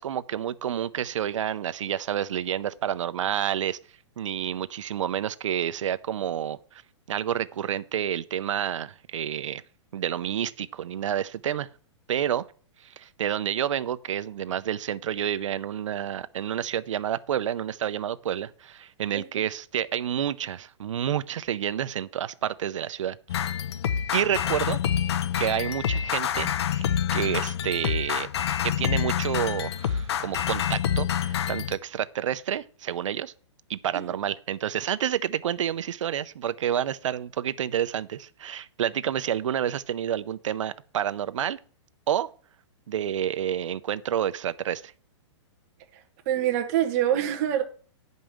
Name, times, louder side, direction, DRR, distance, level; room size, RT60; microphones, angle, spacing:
voice 1, 0.0-3.8 4.2-6.8 7.1-9.6 9.9-11.7 12.1-12.4 12.8-23.5 24.1-24.8 25.4-26.8 27.1-28.3 28.6-33.3 33.7-41.6 42.1-42.3 42.9-44.9, right 10 dB, 80° right, 0.6 m, -29 dB
sound 1, 23.3-31.8, left 9 dB, 60° left, 0.7 m, -27 dB
voice 2, 46.3-47.6, right 11 dB, 30° right, 1.1 m, -25 dB
9.0 x 5.4 x 6.3 m
hypercardioid pair, 170°, 16 cm